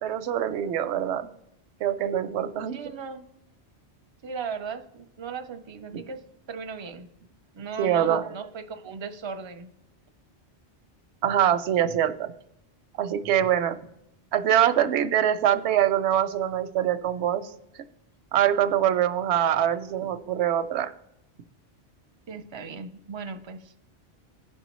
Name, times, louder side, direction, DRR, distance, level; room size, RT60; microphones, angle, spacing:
voice 1, 0.0-1.3 1.8-2.8 7.8-8.3 11.2-12.3 13.0-13.8 14.3-17.5 18.3-20.9, right 10 dB, 85° right, 12 dB, 0.9 m, -24 dB
voice 2, 2.7-3.2 4.2-7.1 7.5-9.7 22.3-23.7, right 5 dB, 35° right, 7 dB, 0.5 m, -37 dB
15.5 x 5.5 x 3.0 m, 0.82 s
omnidirectional pair, 1.1 m